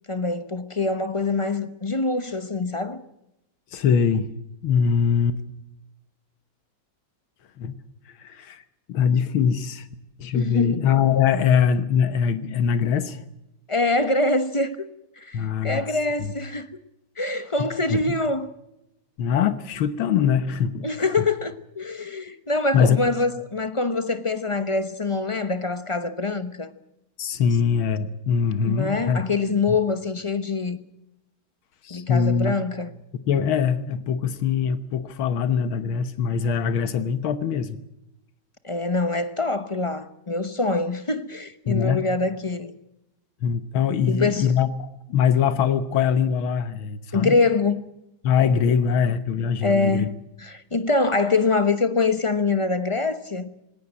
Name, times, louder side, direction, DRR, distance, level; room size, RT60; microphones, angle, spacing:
voice 1, 0.1-3.0 10.3-10.9 13.7-14.9 15.2-16.8 17.2-18.5 20.8-26.7 28.6-30.8 31.9-32.9 38.6-42.7 44.1-44.5 47.1-47.9 49.6-53.5, left 3 dB, 25° left, 0.6 m, -24 dB
voice 2, 3.7-4.3 4.6-5.4 7.6-7.8 8.2-8.6 8.9-9.9 10.2-13.2 15.3-15.8 16.2-16.3 17.9-18.0 19.2-21.3 22.7-23.0 27.2-29.2 29.7-29.8 31.8-32.5 33.3-37.8 41.7-42.0 43.4-47.4 48.2-50.1, left 7 dB, 80° left, 1.9 m, -22 dB
20.0 x 18.0 x 8.8 m
omnidirectional pair, 2.2 m